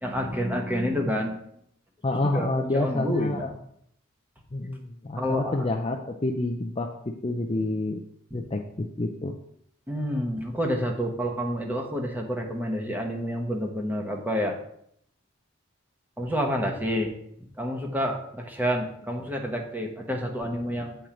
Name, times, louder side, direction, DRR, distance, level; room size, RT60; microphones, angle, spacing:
voice 1, 0.0-1.4 2.3-3.5 5.2-5.7 9.9-14.5 16.2-17.1 17.6-21.0, equal, 10° right, 1 dB, 1.1 m, -28 dB
voice 2, 2.0-3.5 4.5-8.0 8.3-9.3, left 2 dB, 30° left, 3 dB, 0.5 m, -28 dB
7.8 x 4.4 x 5.1 m, 0.70 s
head